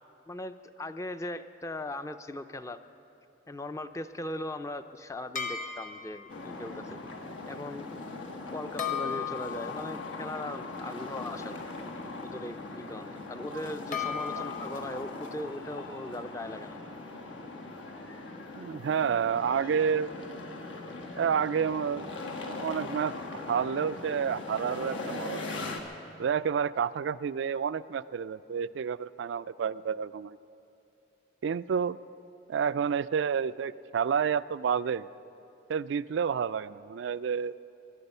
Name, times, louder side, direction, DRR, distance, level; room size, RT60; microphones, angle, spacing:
voice 1, 0.3-2.8 3.5-7.0 7.5-8.0 8.5-11.6 12.2-16.8, left 1 dB, 15° left, 10 dB, 0.4 m, -39 dB
sound 1, 5.4-6.4 8.8-11.9 13.9-14.8, left 7 dB, 40° left, 1.3 m, -37 dB
sound 2, 6.3-25.8, left 2 dB, 80° left, 1.4 m, -40 dB
voice 2, 18.6-20.1 21.2-22.1 22.4-23.1 23.5-25.7 26.2-30.4 31.4-32.0 32.5-35.1 35.7-37.5, right 7 dB, 70° right, 17 dB, 0.3 m, -29 dB
22.0 x 11.5 x 5.5 m, 2.8 s
head